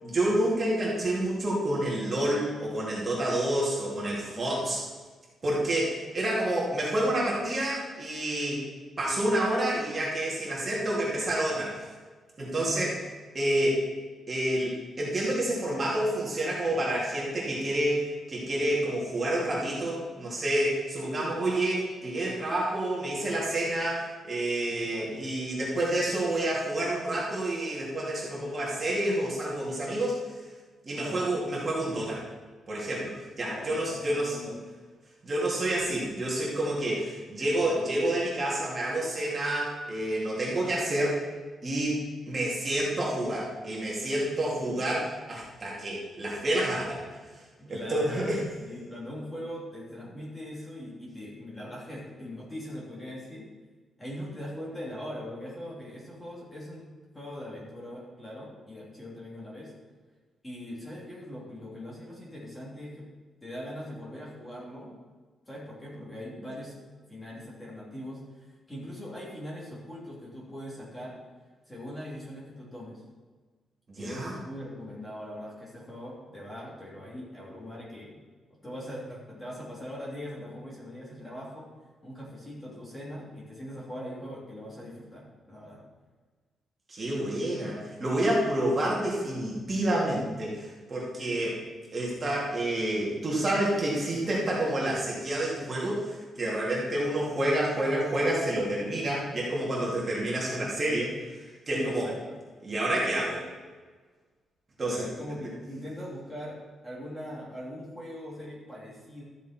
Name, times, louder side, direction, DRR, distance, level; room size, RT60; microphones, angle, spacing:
voice 1, 0.0-4.8 5.4-8.6 9.0-11.9 12.4-12.9 13.3-13.8 14.3-30.2 30.8-32.2 32.7-34.3 35.2-41.2 41.6-42.0 42.3-47.0 47.7-48.4 73.9-74.3 86.9-91.6 91.9-101.1 101.7-102.1 102.6-103.5 104.8-105.1, right 1 dB, 30° right, -5 dB, 2.8 m, -28 dB
voice 2, 4.3-4.7 12.5-12.9 24.8-25.3 31.0-31.3 33.5-34.5 47.6-53.5 54.0-56.8 57.1-59.7 60.4-63.1 63.4-64.9 65.5-66.8 67.1-68.2 68.7-71.2 71.7-73.0 74.0-78.1 78.6-81.7 82.0-85.8 91.3-91.6 101.7-102.4 104.8-106.6 106.8-109.2, equal, 15° left, -6 dB, 3.2 m, -41 dB
13.5 x 7.2 x 4.5 m, 1.4 s
cardioid pair, 155°, 0 cm